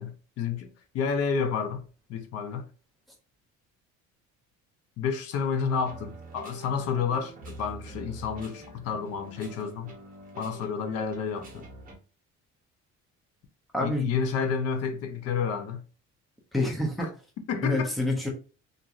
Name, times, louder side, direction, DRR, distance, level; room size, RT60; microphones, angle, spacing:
voice 1, 0.0-1.8 2.1-2.7 5.0-9.9 10.4-11.7 13.8-15.8 17.0-17.1 17.5-17.9, left 6 dB, 55° left, 0.5 m, -30 dB
sound 1, 5.7-11.9, right 2 dB, 25° right, 0.8 m, -46 dB
voice 2, 13.7-14.0 16.5-17.1 17.6-18.3, left 2 dB, ahead, 0.5 m, -27 dB
2.9 x 2.5 x 2.4 m
cardioid pair, 160°, 31 cm